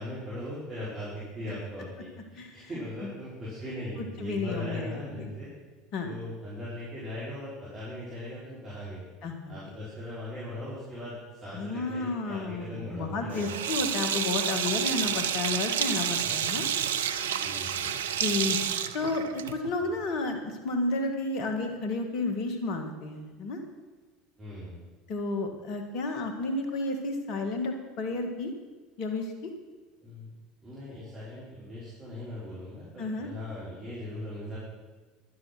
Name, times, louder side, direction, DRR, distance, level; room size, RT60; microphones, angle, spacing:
voice 1, 0.0-5.5 6.0-9.1 9.5-13.6 17.4-18.2 19.8-19.9 24.4-24.8 30.0-30.3 30.6-34.6, left 1 dB, 30° right, -8 dB, 5.2 m, -39 dB
voice 2, 2.4-2.7 3.0-3.1 4.2-5.3 5.9-6.1 9.2-9.7 11.5-16.7 18.2-18.6 18.9-23.6 25.1-28.5 29.0-29.5 33.0-33.3, left 3 dB, 55° left, 5 dB, 2.0 m, -32 dB
Sink (filling or washing), 13.3-19.7, right 9 dB, 75° right, 0.5 m, -29 dB
12.0 x 9.7 x 6.2 m, 1.3 s
figure-of-eight pair, 70°, 0 cm